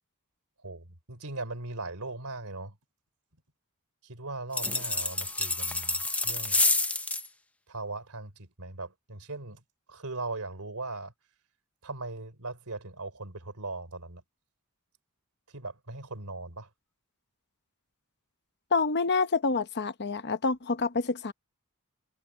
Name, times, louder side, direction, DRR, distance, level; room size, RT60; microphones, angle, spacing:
voice 1, 0.6-2.8 4.0-6.6 7.7-9.6 9.9-11.1 11.8-14.2 15.5-16.7, right 2 dB, 75° right, 3.7 m, -39 dB
sound 1, 4.5-7.3, left 2 dB, 5° left, 0.9 m, -28 dB
voice 2, 18.7-21.3, left 4 dB, 50° left, 1.0 m, -27 dB
head